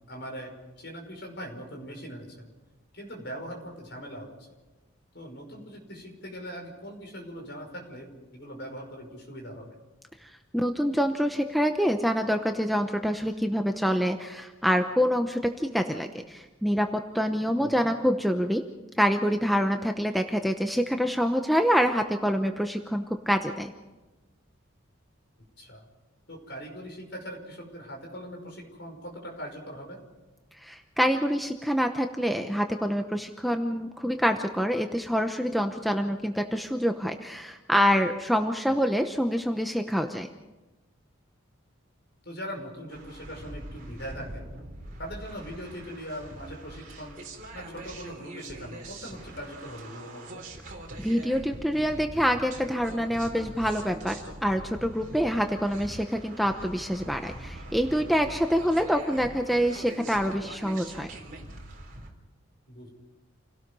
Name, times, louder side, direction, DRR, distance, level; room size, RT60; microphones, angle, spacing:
voice 1, 0.1-0.5 0.8-2.5 2.9-4.3 5.1-9.8 17.6-17.9 25.6-25.9 26.3-30.0 42.2-44.5 45.0-47.2 47.5-50.4 58.6-58.8 62.7-62.9, equal, 55° left, 2 dB, 5.6 m, -41 dB
voice 2, 10.2-18.6 19.0-23.7 30.6-40.3 51.0-54.2 54.4-61.1, equal, ahead, 5 dB, 0.8 m, -26 dB
sound 1, 42.9-62.1, right 1 dB, 40° right, 3.8 m, -43 dB
28.5 x 17.5 x 5.4 m, 1.1 s
head